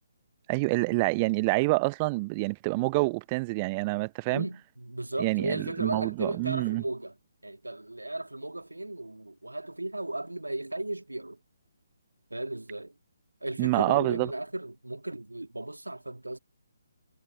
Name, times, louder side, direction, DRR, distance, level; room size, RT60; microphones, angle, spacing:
voice 1, 0.5-4.5 5.2-6.8 13.6-14.3, right 25 dB, 25° right, 0.4 m, -27 dB
voice 2, 4.3-7.1 7.4-11.4 12.3-12.9 13.4-16.4, right 2 dB, 90° right, 2.6 m, -35 dB
figure-of-eight pair, 140°, 0 cm